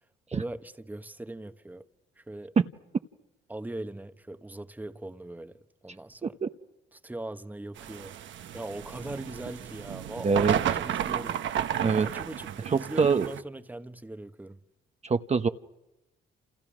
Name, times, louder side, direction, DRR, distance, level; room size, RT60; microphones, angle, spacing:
voice 1, 0.3-1.8 2.2-2.5 3.5-6.4 6.9-8.1 8.5-11.5 12.0-14.6, right 2 dB, 10° right, 1.2 m, -40 dB
sound 1, 7.8-13.4, right 10 dB, 70° right, 1.3 m, -32 dB
voice 2, 10.2-10.6 11.8-12.1 12.6-13.3 15.0-15.5, right 5 dB, 35° right, 0.9 m, -25 dB
29.0 x 29.0 x 6.1 m
cardioid pair, 90°, 20 cm